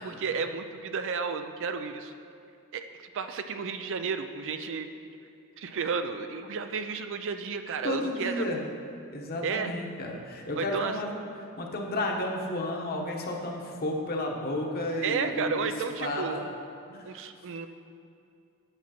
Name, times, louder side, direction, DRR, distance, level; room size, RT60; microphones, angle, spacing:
voice 1, 0.0-2.1 2.7-2.9 3.1-4.9 5.6-8.4 9.4-9.7 10.6-11.0 15.0-16.5 17.0-17.7, right 5 dB, 60° right, 8 dB, 0.4 m, -32 dB
voice 2, 7.8-8.6 9.1-11.1 11.6-15.7 16.0-16.4 16.9-17.1, left 1 dB, 45° left, 1 dB, 1.1 m, -32 dB
8.8 x 7.1 x 4.3 m, 2.5 s
head